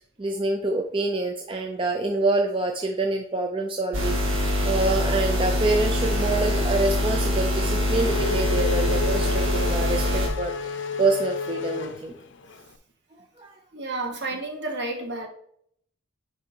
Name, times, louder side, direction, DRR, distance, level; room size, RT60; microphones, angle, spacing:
voice 1, 0.2-4.2 4.6-12.1 13.4-13.5, right 2 dB, 25° right, 3 dB, 0.5 m, -26 dB
sound 1, 3.9-10.3, left 1 dB, 70° right, 1.8 m, -24 dB
Race car auto racing / Accelerating revving vroom, 7.4-12.6, left 4 dB, 60° left, 0.6 m, -31 dB
voice 2, 13.7-15.3, right 2 dB, 55° right, 2 dB, 1.4 m, -31 dB
9.4 x 4.8 x 2.9 m, 0.67 s
head